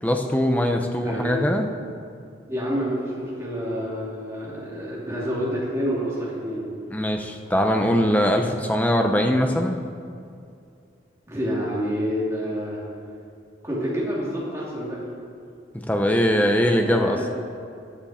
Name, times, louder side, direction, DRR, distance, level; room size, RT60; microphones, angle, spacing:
voice 1, 0.0-1.7 6.9-9.8 15.7-17.2, equal, 10° left, 4 dB, 0.7 m, -21 dB
voice 2, 1.0-1.4 2.5-6.7 11.3-12.8 13.6-15.0 16.8-17.2, equal, 15° right, -6 dB, 2.9 m, -28 dB
14.0 x 9.6 x 4.3 m, 2.4 s
head